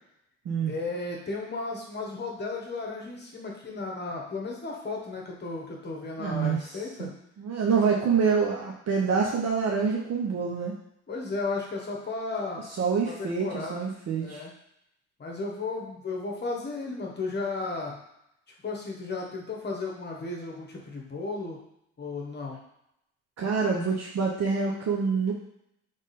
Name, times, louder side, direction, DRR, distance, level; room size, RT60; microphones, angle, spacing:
voice 1, 0.6-7.1 11.1-12.6 13.1-13.8 14.2-14.5 15.2-18.0 18.6-21.6 22.0-22.6, left 3 dB, 35° left, -1 dB, 1.1 m, -34 dB
voice 2, 6.2-7.1 7.4-10.7 12.8-14.4 23.4-25.3, right 5 dB, 60° right, -2 dB, 0.8 m, -26 dB
3.6 x 3.5 x 4.1 m, 0.79 s
cardioid pair, 90°, 30 cm